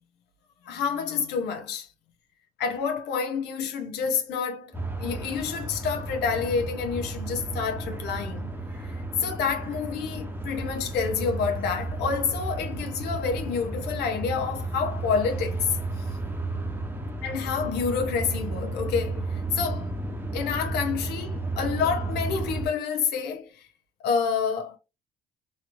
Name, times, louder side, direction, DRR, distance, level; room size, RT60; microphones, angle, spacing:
voice 1, 0.6-1.9 2.6-8.5 9.2-15.8 17.2-20.0 20.3-23.7 24.0-24.8, left 6 dB, 80° left, 0.7 m, -28 dB
sound 1, 4.7-22.7, right 2 dB, 10° right, 0.8 m, -33 dB
3.0 x 3.0 x 2.5 m
cardioid pair, 110°, 17 cm